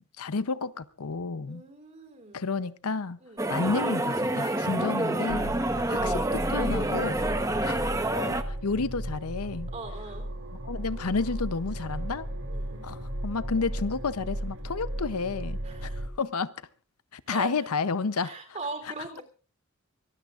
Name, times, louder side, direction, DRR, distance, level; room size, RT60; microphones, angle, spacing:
voice 1, 0.0-1.6 2.3-3.2 3.5-5.6 5.9-6.2 6.5-7.3 7.6-7.9 8.1-9.7 10.6-12.3 12.8-16.5 17.1-18.3, left 4 dB, 85° left, 0.7 m, -31 dB
voice 2, 1.5-2.5 3.2-3.5 5.9-6.3 9.7-10.3 12.5-12.9 15.6-16.0 17.3-17.7 18.2-19.2, right 3 dB, 30° right, 3.4 m, -42 dB
sound 1, 3.4-8.4, right 1 dB, 15° right, 1.0 m, -28 dB
sound 2, 5.3-16.1, right 1 dB, 65° right, 3.7 m, -35 dB
24.5 x 19.0 x 2.5 m
head